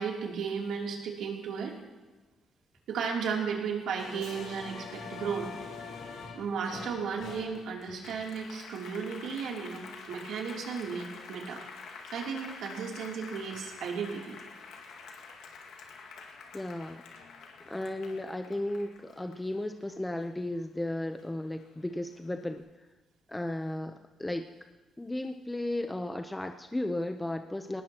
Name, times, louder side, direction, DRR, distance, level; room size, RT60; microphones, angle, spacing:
voice 1, 0.0-1.7 2.9-5.5 6.3-11.6 12.1-14.4, right 6 dB, 80° right, -1 dB, 3.0 m, -34 dB
Applause, 4.0-20.8 21.2-22.4, left 5 dB, 80° left, 2.0 m, -46 dB
voice 2, 16.5-17.0 17.7-22.7 23.3-24.4 25.0-27.8, left 1 dB, 10° left, 6 dB, 0.8 m, -34 dB
19.5 x 19.0 x 3.0 m, 1.2 s
cardioid pair, 90°, 0 cm